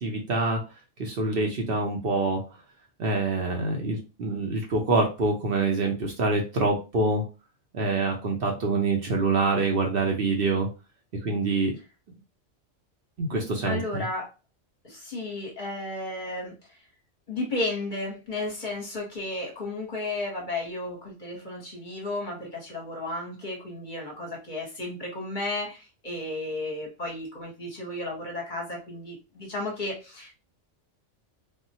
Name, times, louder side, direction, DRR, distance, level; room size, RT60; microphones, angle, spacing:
voice 1, 0.0-0.6 1.0-2.4 3.0-7.2 7.7-10.7 11.2-11.7 13.2-14.0, right 3 dB, 55° right, 2 dB, 0.8 m, -25 dB
voice 2, 13.6-14.3 14.8-16.5 17.3-30.3, left 2 dB, 45° left, -1 dB, 0.9 m, -33 dB
3.6 x 2.1 x 2.7 m, 0.30 s
omnidirectional pair, 1.3 m